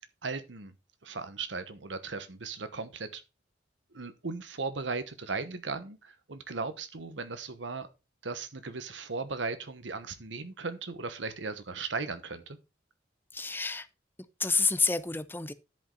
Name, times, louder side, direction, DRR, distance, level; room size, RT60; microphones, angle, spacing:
voice 1, 0.2-0.7 1.0-3.2 3.9-7.9 8.2-12.6, right 4 dB, 90° right, 1.1 m, -37 dB
voice 2, 13.3-13.9 14.4-15.5, left 4 dB, 10° left, 0.5 m, -28 dB
11.0 x 5.3 x 3.9 m
head